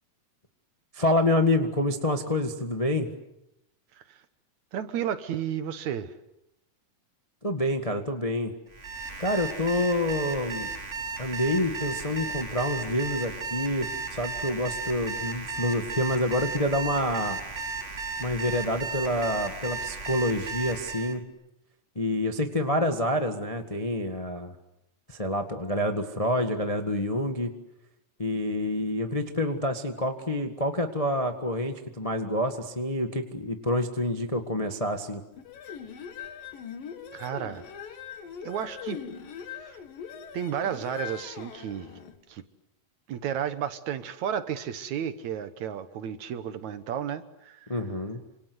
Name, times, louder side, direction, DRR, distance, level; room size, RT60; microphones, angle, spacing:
voice 1, 0.9-3.1 7.4-8.5 9.2-10.7 11.2-17.4 18.2-21.2 21.9-24.5 25.1-27.5 28.2-35.2 47.7-48.2, left 1 dB, 25° left, 0.7 m, -27 dB
voice 2, 4.7-6.1 37.1-37.6 38.4-39.0 39.6-39.8 40.3-42.0 42.3-42.4 43.1-47.7, right 9 dB, 65° right, 2.3 m, -32 dB
Alarm, 8.7-21.2, right 4 dB, 30° right, 1.5 m, -35 dB
sound 1, 35.4-42.2, left 7 dB, 85° left, 3.7 m, -41 dB
28.0 x 26.5 x 7.9 m
omnidirectional pair, 3.9 m